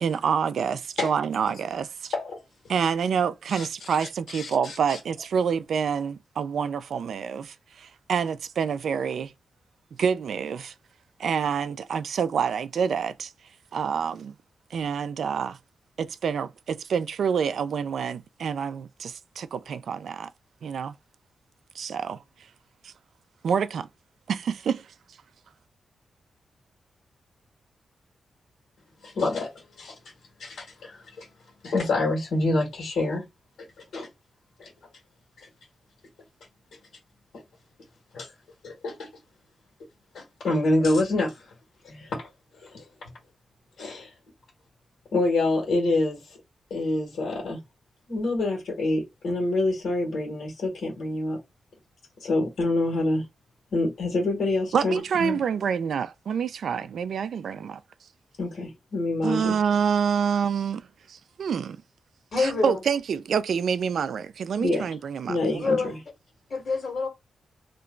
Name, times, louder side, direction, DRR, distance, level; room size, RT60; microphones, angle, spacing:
voice 1, 0.0-2.1 2.7-9.3 10.0-10.7 11.2-13.3 13.7-14.3 14.7-15.6 16.0-20.3 20.6-20.9 21.8-22.2 22.8-22.9 23.4-23.9 24.3-24.9 54.7-57.8 59.2-60.8 61.1-61.8 62.4-65.7, right 7 dB, 65° right, 0.3 m, -27 dB
voice 2, 3.5-5.0 29.0-29.5 29.8-29.9 30.4-31.3 31.6-33.2 33.6-33.7 33.9-34.1 34.6-34.7 35.4-35.5 37.3-37.4 38.1-38.3 38.6-39.1 40.1-41.5 41.8-42.3 42.6-42.8 43.8-44.1 45.1-46.4 46.7-47.6 48.1-51.4 52.2-53.2 53.7-55.4 58.4-59.5 64.6-64.9 65.3-65.9, left 2 dB, 75° left, 1.6 m, -27 dB
voice 3, 62.3-62.8 65.6-65.9 66.5-67.1, left 4 dB, 45° left, 1.8 m, -26 dB
2.9 x 2.3 x 3.7 m
wide cardioid pair, 175°, 0 cm